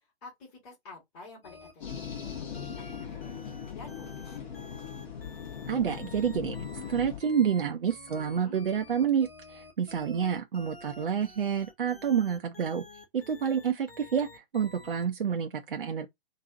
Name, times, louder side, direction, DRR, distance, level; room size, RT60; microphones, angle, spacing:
voice 1, 0.2-4.4 8.1-8.6, left 3 dB, 25° left, 2.1 m, -50 dB
sound 1, 1.4-15.2, left 2 dB, 75° left, 1.4 m, -50 dB
sound 2, 1.8-7.2, left 7 dB, 50° left, 1.8 m, -39 dB
voice 2, 5.7-6.6 6.9-12.8 13.1-16.1, right 7 dB, 65° right, 0.6 m, -29 dB
4.0 x 2.7 x 2.5 m
figure-of-eight pair, 125°, 30 cm